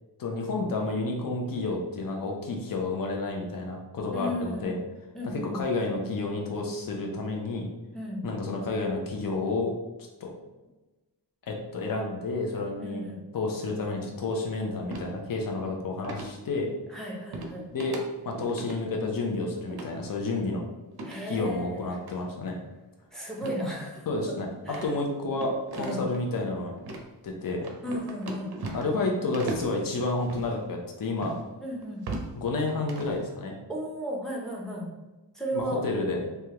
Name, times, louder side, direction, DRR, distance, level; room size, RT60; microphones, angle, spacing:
voice 1, 0.2-4.8 5.2-7.7 8.2-9.8 10.2-10.3 11.5-13.0 13.3-16.7 17.7-18.0 18.2-20.6 21.3-22.6 24.1-24.5 24.8-26.7 27.2-27.6 28.7-31.3 32.4-33.6 35.5-36.2, left 3 dB, 50° left, 0 dB, 0.6 m, -30 dB
voice 2, 4.1-4.7 5.1-5.6 7.9-8.2 12.8-13.2 16.9-17.7 21.0-22.0 23.1-24.1 24.7-24.9 25.8-26.1 27.8-28.5 31.6-32.1 33.7-34.9 35.3-35.8, equal, ahead, -2 dB, 0.6 m, -34 dB
sound 1, 14.9-15.1 16.0-16.3 17.3-17.5 17.8-18.0 18.3-18.8 19.7-19.9 20.9-21.2 22.0-22.1 23.4-23.7 24.0-24.1 24.6-26.2 26.8-27.0 27.6-29.0 29.3-29.7 30.2-30.5 31.2-31.4 31.8-32.3 32.7-33.2, right 3 dB, 60° right, 0.5 m, -37 dB
3.2 x 2.3 x 2.8 m, 1.1 s
wide cardioid pair, 135°, 43 cm